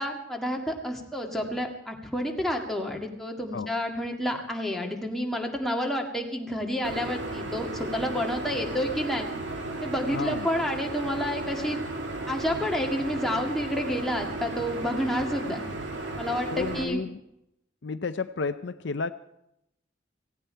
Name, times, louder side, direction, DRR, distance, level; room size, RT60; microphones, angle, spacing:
voice 1, 0.0-9.3 9.8-11.8 12.3-15.6 16.2-17.0, equal, ahead, 0 dB, 1.9 m, -29 dB
sound 1, 6.8-16.8, right 2 dB, 80° right, 2.3 m, -35 dB
voice 2, 10.0-10.5 16.5-17.2 17.8-19.1, left 4 dB, 70° left, 11 dB, 0.6 m, -32 dB
17.5 x 16.0 x 4.5 m, 0.82 s
head